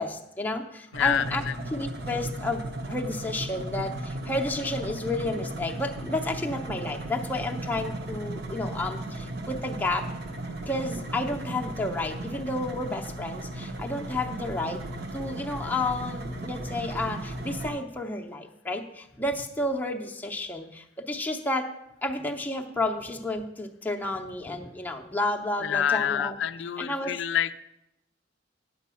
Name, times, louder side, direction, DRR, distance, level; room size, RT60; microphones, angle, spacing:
voice 1, 0.0-1.4 1.7-10.1 10.7-14.8 15.1-21.7 22.0-26.3 26.8-27.1, left 2 dB, 10° left, 1 dB, 0.6 m, -31 dB
voice 2, 0.9-1.5 25.6-27.5, left 9 dB, 65° left, 12 dB, 0.4 m, -27 dB
sound 1, 0.9-17.7, right 2 dB, 55° right, 0.9 m, -36 dB
9.1 x 5.2 x 6.9 m, 0.87 s
head